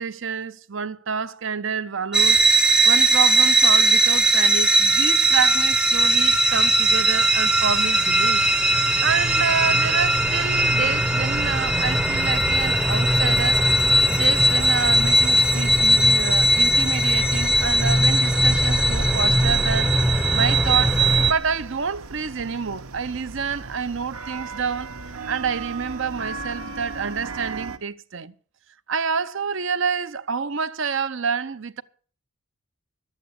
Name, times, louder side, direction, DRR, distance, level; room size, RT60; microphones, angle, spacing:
voice 1, 0.0-2.5 2.9-8.5 8.7-13.6 14.1-25.0 25.3-28.3 28.9-31.8, right 6 dB, 55° right, 0.6 m, -28 dB
sound 1, 2.1-21.3, right 1 dB, 5° right, 0.7 m, -19 dB
sound 2, 12.4-27.8, right 3 dB, 80° right, 1.0 m, -38 dB
12.0 x 8.3 x 8.2 m
head